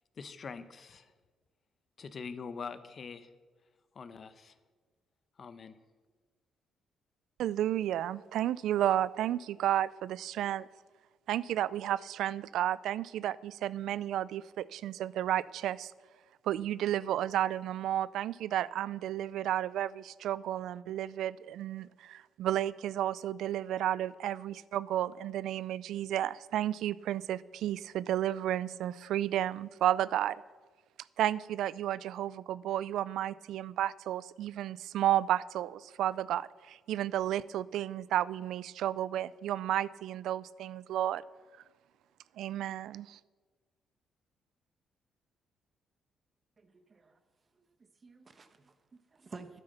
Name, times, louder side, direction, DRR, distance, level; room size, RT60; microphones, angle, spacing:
voice 1, 0.2-1.1 2.0-3.3 3.9-4.6 5.4-5.8, left 5 dB, 45° left, 12 dB, 0.9 m, -44 dB
voice 2, 7.4-10.7 11.3-15.9 16.4-30.4 31.2-41.2 42.4-43.2, right 12 dB, 80° right, 19 dB, 0.4 m, -32 dB
voice 3, 46.6-47.2 48.0-49.6, right 4 dB, 35° right, 9 dB, 1.2 m, -51 dB
12.0 x 9.9 x 6.7 m, 1.4 s
cardioid pair, 90°, 0 cm